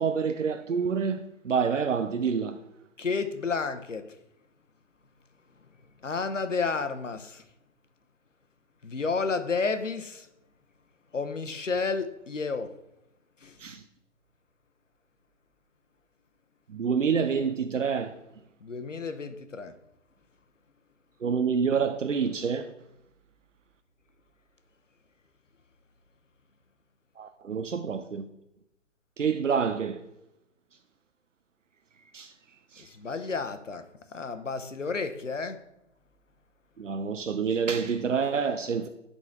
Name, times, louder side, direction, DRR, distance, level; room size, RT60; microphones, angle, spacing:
voice 1, 0.0-2.6 13.6-13.8 16.7-18.1 21.2-22.6 27.2-28.3 29.2-30.0 32.1-32.3 32.7-32.8 36.8-38.9, right 6 dB, 85° right, 0.6 m, -27 dB
voice 2, 3.0-4.2 6.0-7.4 8.8-10.3 11.1-12.7 13.4-13.6 18.6-19.7 32.8-33.9 34.1-35.6, left 4 dB, 90° left, 0.8 m, -31 dB
10.5 x 4.0 x 3.6 m
figure-of-eight pair, 135°, 37 cm